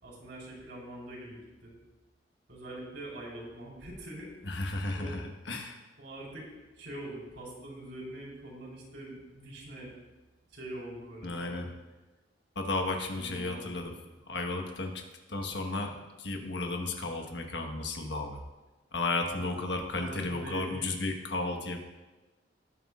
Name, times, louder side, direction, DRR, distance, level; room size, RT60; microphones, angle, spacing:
voice 1, 0.0-1.7 2.5-4.3 4.9-5.2 6.0-6.4 6.8-9.9 10.5-11.6 13.1-14.0 19.3-19.5 19.9-20.9, right 1 dB, 65° right, -3 dB, 4.5 m, -43 dB
voice 2, 4.4-5.8 11.2-11.7 12.5-13.9 14.3-15.0 15.3-18.4 18.9-21.8, left 2 dB, 70° left, 3 dB, 1.4 m, -33 dB
19.0 x 9.6 x 2.5 m, 1.2 s
head